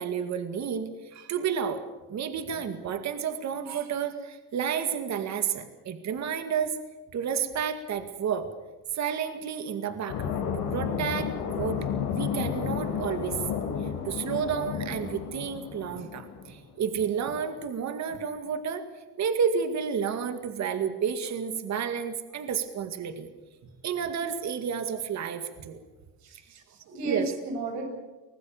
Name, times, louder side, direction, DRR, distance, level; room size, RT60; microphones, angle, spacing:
voice 1, 0.0-1.8 2.1-6.8 7.1-8.5 8.9-11.8 12.1-18.9 19.2-23.3 23.8-25.8 27.0-27.3, right 7 dB, 50° right, 8 dB, 2.2 m, -31 dB
sound 1, 10.1-16.5, left 7 dB, 85° left, 5.9 m, -32 dB
voice 2, 26.2-27.8, right 3 dB, 80° right, 3 dB, 7.9 m, -34 dB
25.0 x 19.0 x 7.2 m, 1.2 s
cardioid pair, 130°, 36 cm